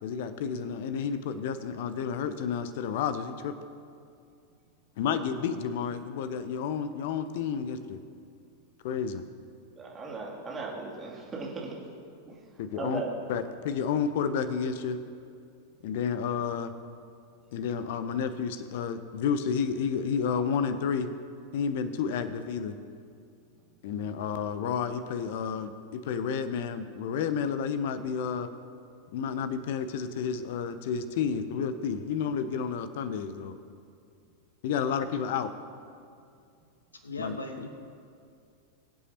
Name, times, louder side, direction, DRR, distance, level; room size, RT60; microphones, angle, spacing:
voice 1, 0.0-3.6 5.0-8.0 8.8-9.2 12.6-13.0 13.3-15.0 15.8-16.7 17.5-21.1 21.5-22.7 23.8-28.5 29.1-33.5 34.6-35.5 37.2-37.3, left 6 dB, 50° left, 12 dB, 0.7 m, -31 dB
voice 2, 9.8-11.8 12.3-12.4 12.8-13.1, right 4 dB, 20° right, -4 dB, 2.8 m, -37 dB
voice 3, 37.0-37.7, left 2 dB, 75° left, 6 dB, 1.3 m, -37 dB
22.5 x 8.2 x 3.0 m, 2.4 s
figure-of-eight pair, 90°, 0 cm